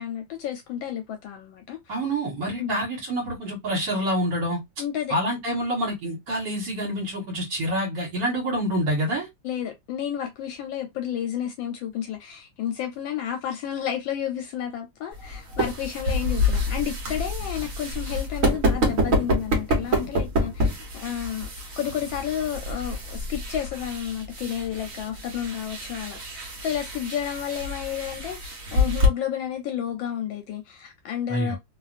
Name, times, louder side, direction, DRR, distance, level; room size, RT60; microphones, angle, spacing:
voice 1, 0.0-2.0 2.6-2.8 4.8-5.1 9.4-21.5 21.8-31.6, left 10 dB, 75° left, 1.3 m, -31 dB
voice 2, 1.9-4.6 5.1-9.3 31.3-31.6, right 1 dB, 65° right, 1.7 m, -27 dB
sound 1, 15.1-29.1, left 1 dB, 50° right, 1.3 m, -27 dB
3.2 x 2.4 x 2.4 m
omnidirectional pair, 2.2 m